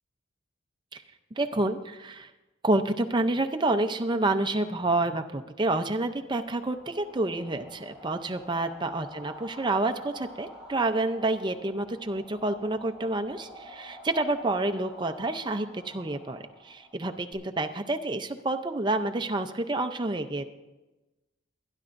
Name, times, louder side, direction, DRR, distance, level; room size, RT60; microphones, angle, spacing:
voice 1, 1.4-2.3 2.6-20.4, right 2 dB, 25° right, 7 dB, 0.6 m, -28 dB
sound 1, 6.2-17.3, equal, 5° right, 4.8 m, -49 dB
23.0 x 10.5 x 2.6 m, 1.1 s
head